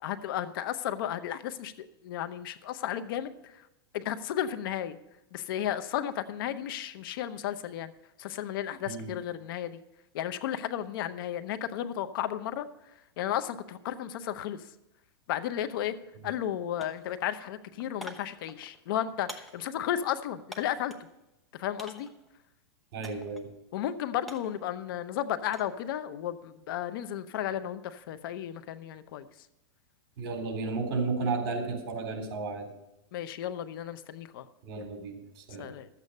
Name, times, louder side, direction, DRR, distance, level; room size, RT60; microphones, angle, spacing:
voice 1, 0.0-3.6 3.9-5.0 5.3-7.9 8.2-9.8 10.1-12.7 13.2-14.7 15.3-15.9 16.2-20.9 21.5-22.1 23.7-29.3 33.1-34.5 35.6-35.9, left 11 dB, 60° left, 12 dB, 0.8 m, -33 dB
sound 1, 15.5-15.7 16.0-16.5 16.8-21.1 21.8-22.3 23.0-23.5 23.8-25.8 26.1-26.5, left 1 dB, ahead, 1.0 m, -48 dB
voice 2, 22.9-23.5 30.2-32.7 34.6-35.7, right 3 dB, 55° right, 4 dB, 3.7 m, -33 dB
13.0 x 8.4 x 5.4 m, 0.93 s
hypercardioid pair, 140°, 13 cm